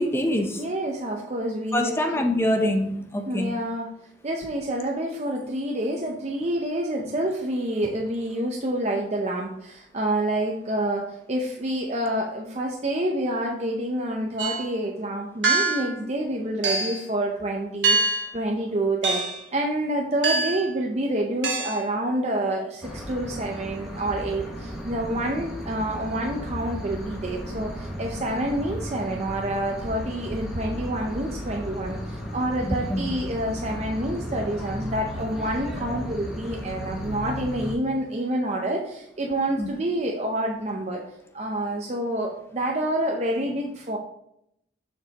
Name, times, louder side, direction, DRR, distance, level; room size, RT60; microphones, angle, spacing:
voice 1, 0.0-0.6 1.7-3.5 32.6-33.1 39.6-39.7, left 1 dB, 15° left, 4 dB, 0.6 m, -25 dB
voice 2, 0.6-1.9 3.3-3.9 4.2-19.2 19.5-41.0 41.3-44.0, right 1 dB, 35° right, 0 dB, 0.6 m, -28 dB
sound 1, 14.4-14.7 15.4-15.9 16.6-17.0 17.8-18.3 19.0-19.5 20.2-20.7 21.4-21.9, right 3 dB, 75° right, 1.2 m, -24 dB
sound 2, 22.8-37.7, equal, 5° right, 1.3 m, -35 dB
7.1 x 6.3 x 2.9 m, 0.76 s
head